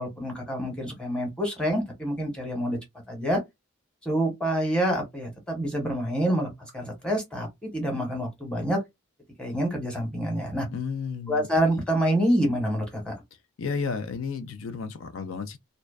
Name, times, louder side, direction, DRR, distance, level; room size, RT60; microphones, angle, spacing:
voice 1, 0.0-2.8 3.1-3.4 4.0-8.8 9.4-10.7 11.3-13.2, equal, 5° left, 0.9 m, -27 dB
voice 2, 10.7-11.5 13.6-15.6, left 5 dB, 80° left, 0.4 m, -32 dB
2.5 x 2.2 x 2.3 m
head